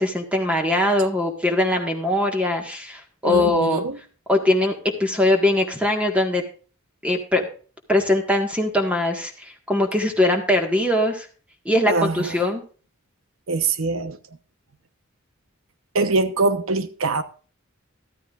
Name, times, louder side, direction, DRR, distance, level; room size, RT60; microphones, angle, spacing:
voice 1, 0.0-3.8 4.3-6.4 7.0-7.4 7.9-11.3 11.6-12.6, left 1 dB, 5° right, 1.6 m, -21 dB
voice 2, 3.2-4.0 11.9-12.4 13.5-14.2 15.9-17.2, right 3 dB, 80° right, 1.1 m, -23 dB
13.5 x 13.0 x 2.5 m
head